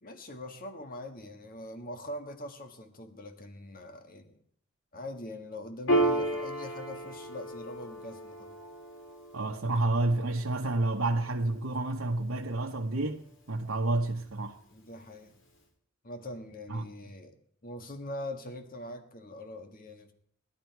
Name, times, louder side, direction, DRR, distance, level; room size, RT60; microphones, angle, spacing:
voice 1, 0.0-4.4 4.9-8.6 14.7-15.4 16.0-17.4 17.6-20.1, left 1 dB, 45° left, 1.6 m, -43 dB
Piano, 5.9-12.8, right 1 dB, 65° left, 2.7 m, -34 dB
voice 2, 9.3-13.2 13.5-14.5 16.7-16.8, right 2 dB, 90° right, 1.1 m, -29 dB
19.0 x 12.0 x 4.7 m
head